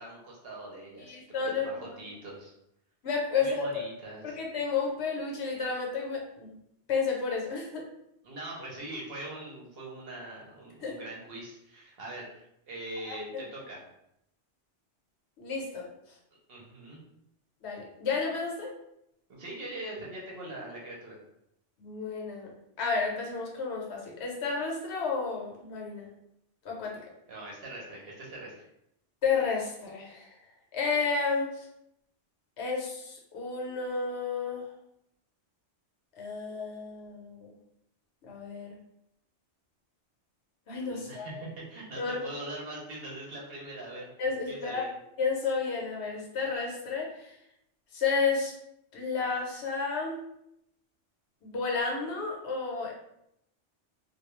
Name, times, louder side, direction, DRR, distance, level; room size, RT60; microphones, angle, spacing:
voice 1, 0.0-2.5 3.3-4.4 8.2-13.8 16.5-17.0 19.3-21.2 27.3-28.7 40.9-44.1 44.5-45.0, right 1 dB, 60° right, -3 dB, 0.9 m, -42 dB
voice 2, 1.0-1.9 3.0-3.6 4.2-6.5 6.9-7.8 10.8-10.9 13.1-13.2 15.4-15.9 17.6-18.7 21.8-22.5 22.8-26.1 26.6-27.0 29.2-30.3 30.7-31.5 32.6-34.6 36.2-37.5 38.3-38.8 40.7-41.4 42.0-42.2 44.2-44.8 45.2-47.3 47.9-48.5 48.9-50.2 51.4-52.9, left 5 dB, 70° left, -1 dB, 0.9 m, -31 dB
2.2 x 2.2 x 3.0 m, 0.79 s
omnidirectional pair, 1.2 m